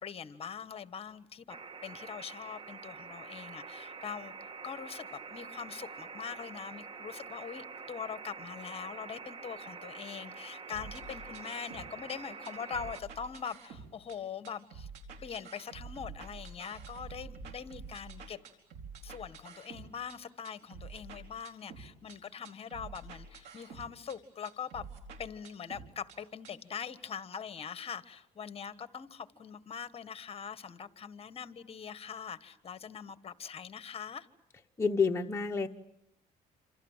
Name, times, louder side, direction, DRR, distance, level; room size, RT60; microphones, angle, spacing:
voice 1, 0.0-1.6 1.8-4.3 4.6-14.9 15.2-18.4 19.0-24.9 25.2-34.3, left 7 dB, 35° left, 13 dB, 1.4 m, -42 dB
sound 1, 1.5-13.0, right 4 dB, 30° right, 1.6 m, -46 dB
sound 2, 10.7-12.2 12.4-14.2 14.4-20.2 20.4-22.2 22.4-24.2 24.4-26.2 26.4-26.5, right 4 dB, 85° right, 4.5 m, -48 dB
voice 2, 34.8-35.7, left 5 dB, 15° left, 2 dB, 1.1 m, -28 dB
27.5 x 27.0 x 7.4 m, 0.77 s
cardioid pair, 110°, 17 cm